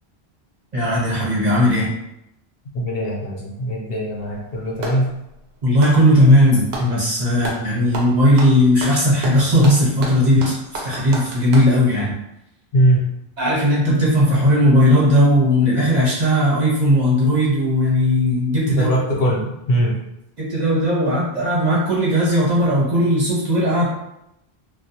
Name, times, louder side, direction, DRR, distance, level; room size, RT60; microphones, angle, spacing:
voice 1, 0.7-1.9 5.6-10.5 10.8-12.1 13.4-18.9 20.4-23.8, equal, 45° right, -7 dB, 1.0 m, -17 dB
voice 2, 2.7-5.1 12.7-13.1 18.7-20.0, right 1 dB, 65° left, -3 dB, 0.8 m, -21 dB
Clapping, 4.1-5.1 5.7-6.9 7.4-7.7 7.9-11.7, right 2 dB, 75° right, 0.8 m, -31 dB
2.3 x 2.2 x 2.8 m, 0.86 s
omnidirectional pair, 1.1 m